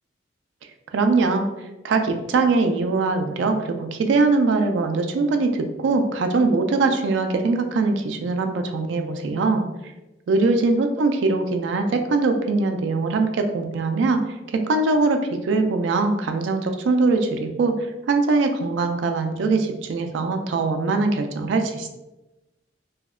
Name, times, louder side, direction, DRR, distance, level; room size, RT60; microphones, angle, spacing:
voice 1, 0.9-1.5 1.8-9.6 10.3-14.2 14.7-17.7 18.1-21.9, right 3 dB, 75° right, 6 dB, 0.3 m, -22 dB
2.7 x 2.1 x 2.3 m, 1.0 s
head